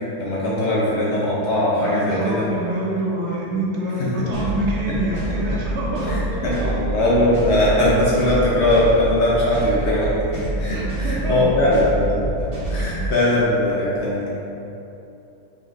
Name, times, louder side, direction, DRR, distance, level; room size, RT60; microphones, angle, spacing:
voice 1, 0.2-2.5 3.5-3.6 4.0-4.1 4.3-4.4 6.0-12.2 12.7-14.3, left 1 dB, 65° left, -7 dB, 1.0 m, -20 dB
voice 2, 1.8-6.8 10.7-11.6 12.8-12.9, right 1 dB, 65° right, -4 dB, 1.1 m, -26 dB
sound 1, 4.3-13.1, right 1 dB, 45° right, 1.2 m, -27 dB
5.3 x 3.8 x 2.6 m, 2.9 s
omnidirectional pair, 1.3 m